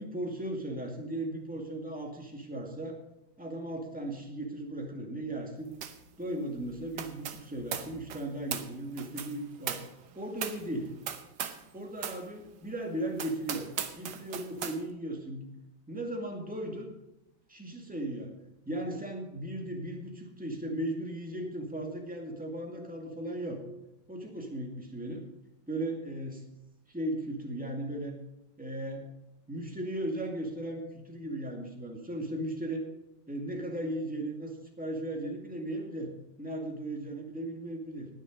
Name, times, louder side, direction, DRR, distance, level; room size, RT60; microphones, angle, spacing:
voice 1, 0.0-3.0 3.4-5.7 6.2-9.8 10.2-10.9 11.7-13.7 13.9-15.5 15.9-16.9 17.5-18.3 18.7-23.6 24.1-25.3 25.7-26.4 26.9-28.1 28.6-29.1 29.5-32.9 33.3-36.1 36.4-38.1, right 1 dB, 5° right, 1 dB, 2.0 m, -36 dB
sound 1, 5.8-6.1 6.3-11.7 12.0-12.3 12.7-12.8 13.2-14.8, right 8 dB, 80° right, 1.6 m, -39 dB
19.5 x 6.6 x 5.1 m, 0.86 s
omnidirectional pair, 1.8 m